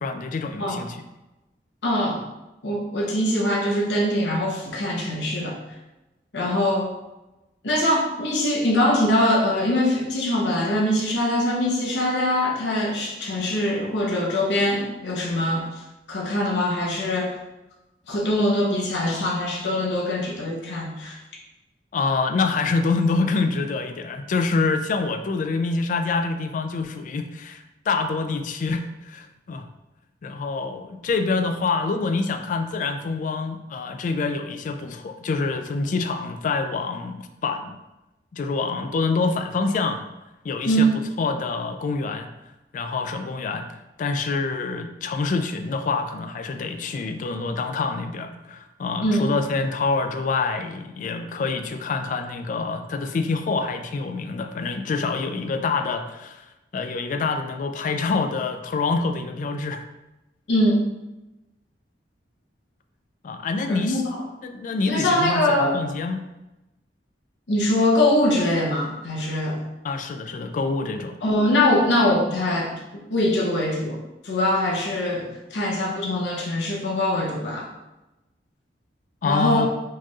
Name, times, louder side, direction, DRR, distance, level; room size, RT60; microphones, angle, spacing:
voice 1, 0.0-1.0 21.9-29.7 30.2-37.8 38.3-40.0 40.4-40.9 41.2-42.3 42.7-56.5 56.7-59.8 63.2-64.0 64.4-66.2 69.8-71.2 79.2-79.7, left 4 dB, 45° left, 7 dB, 0.3 m, -26 dB
voice 2, 1.8-2.2 2.6-5.5 6.3-6.9 7.6-15.8 16.1-17.4 18.1-21.2 40.7-41.0 49.0-49.3 60.5-60.9 63.7-64.3 64.9-65.8 67.5-69.6 71.2-77.7 79.2-79.7, left 1 dB, 75° left, -2 dB, 0.8 m, -23 dB
4.5 x 3.0 x 2.3 m, 0.99 s
head